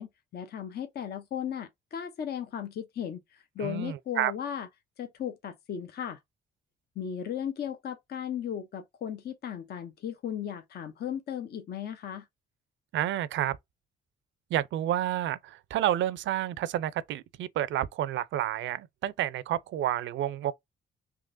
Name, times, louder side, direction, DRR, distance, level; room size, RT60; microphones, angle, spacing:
voice 1, 0.0-4.7 5.0-6.2 7.0-12.2, left 9 dB, 55° left, 0.6 m, -36 dB
voice 2, 3.6-4.3 12.9-13.6 14.5-20.5, right 12 dB, 70° right, 0.5 m, -30 dB
3.6 x 2.9 x 2.5 m
cardioid pair, 90°, 20 cm